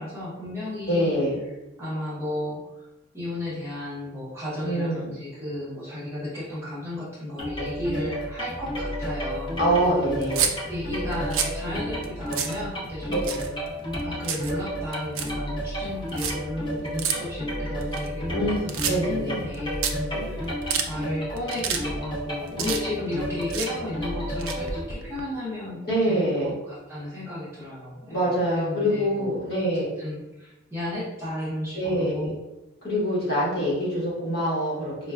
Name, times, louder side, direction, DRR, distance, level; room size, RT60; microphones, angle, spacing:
voice 1, 0.0-1.2 1.8-2.9 3.1-10.1 10.6-13.4 14.0-20.5 20.9-29.4 29.7-32.4, left 1 dB, 10° right, -9 dB, 0.8 m, -34 dB
voice 2, 0.9-1.3 4.6-5.1 9.6-10.5 13.1-13.3 18.3-19.4 20.1-20.3 25.8-26.5 28.1-30.0 31.7-32.3 32.8-35.1, equal, 50° left, -7 dB, 1.2 m, -25 dB
sound 1, 7.4-24.8, equal, 25° left, 0.5 m, -32 dB
sound 2, 10.2-10.5 11.1-11.6 12.0-12.1 12.3-12.6 13.1-13.7 13.9-14.5 14.9-15.3 16.1-16.3 17.0-17.1 17.8-18.4 18.7-19.2 19.5-19.6 19.8-19.9 20.4-20.9 21.4-21.8 22.1-23.1 23.4-23.7 24.3-25.2, right 7 dB, 75° right, 0.4 m, -28 dB
4.4 x 2.1 x 2.3 m, 1.0 s
head